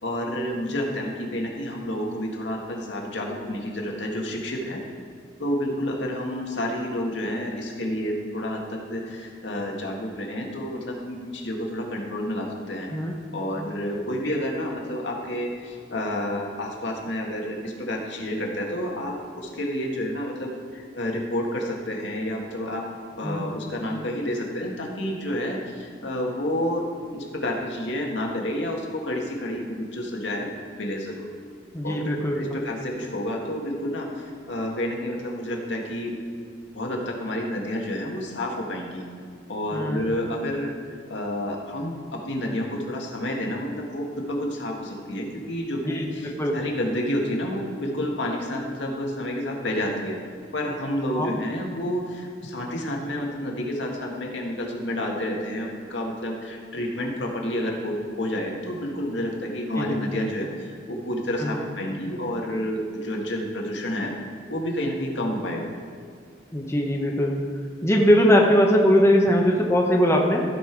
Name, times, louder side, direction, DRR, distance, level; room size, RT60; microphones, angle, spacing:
voice 1, 0.0-4.8 5.4-12.9 13.3-22.8 23.2-26.9 27.1-31.3 31.8-36.1 36.7-39.0 39.5-40.7 41.1-50.2 50.5-64.1 64.5-65.7, left 1 dB, 75° left, -1 dB, 1.8 m, -29 dB
voice 2, 31.7-32.6 39.7-40.0 45.9-46.0 46.4-46.6 51.1-51.3 59.8-60.0 61.4-61.7 66.5-67.4 67.8-70.4, equal, 15° left, 0 dB, 0.9 m, -20 dB
15.0 x 5.7 x 4.6 m, 2.3 s
head